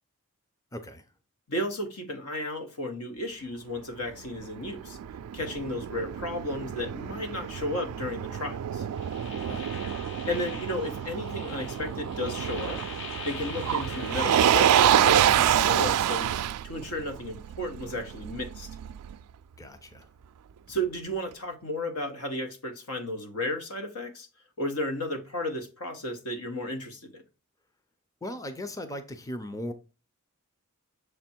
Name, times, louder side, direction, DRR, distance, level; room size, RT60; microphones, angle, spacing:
voice 1, 0.7-1.1 9.4-9.7 19.6-20.1 28.2-29.7, left 1 dB, 15° left, 0.6 m, -38 dB
voice 2, 1.5-5.0 5.3-8.9 10.3-12.8 13.2-18.7 20.7-24.3 24.6-27.2, left 1 dB, 80° left, 1.3 m, -33 dB
Motor vehicle (road), 4.1-19.1, right 10 dB, 85° right, 0.3 m, -27 dB
sound 1, 8.9-15.7, left 5 dB, 55° left, 0.8 m, -42 dB
6.8 x 3.4 x 4.4 m
head